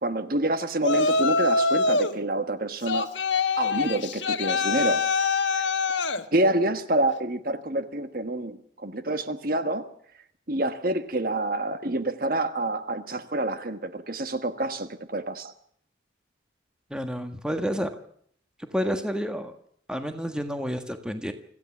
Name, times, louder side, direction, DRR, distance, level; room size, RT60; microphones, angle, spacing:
voice 1, 0.0-3.1 3.6-5.1 5.5-5.7 6.3-9.9 10.5-15.5, right 1 dB, 50° right, 1.4 m, -27 dB
Yell, 0.8-2.2 2.9-6.2, left 3 dB, 75° left, 1.5 m, -24 dB
voice 2, 16.9-17.9 18.7-19.5 19.9-21.3, equal, 5° right, 1.5 m, -29 dB
25.5 x 15.5 x 7.3 m
head